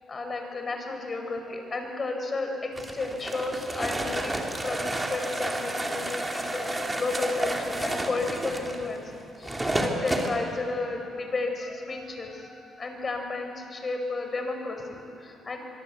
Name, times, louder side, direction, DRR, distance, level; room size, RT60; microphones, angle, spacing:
voice 1, 0.0-15.6, left 3 dB, 35° left, 4 dB, 5.1 m, -33 dB
sound 1, 2.8-10.3, right 1 dB, 15° right, 3.3 m, -31 dB
24.5 x 23.0 x 8.2 m, 2.7 s
cardioid pair, 90°, 0 cm